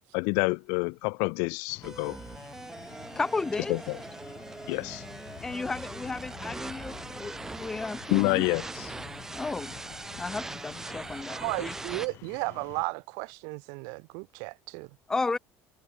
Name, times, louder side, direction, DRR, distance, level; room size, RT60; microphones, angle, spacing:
voice 1, 0.1-2.2 3.7-4.0 4.7-5.0 8.1-8.9, left 37 dB, 90° left, 0.5 m, -28 dB
sound 1, 1.7-12.9, left 18 dB, 50° left, 1.8 m, -49 dB
sound 2, 1.8-12.1, right 3 dB, 10° right, 0.7 m, -41 dB
voice 2, 3.1-3.8 5.4-8.4 9.3-9.8 10.2-11.7 15.1-15.4, left 3 dB, 10° left, 1.1 m, -33 dB
voice 3, 11.3-14.9, right 36 dB, 85° right, 1.8 m, -34 dB
cardioid pair, 180°, 5 cm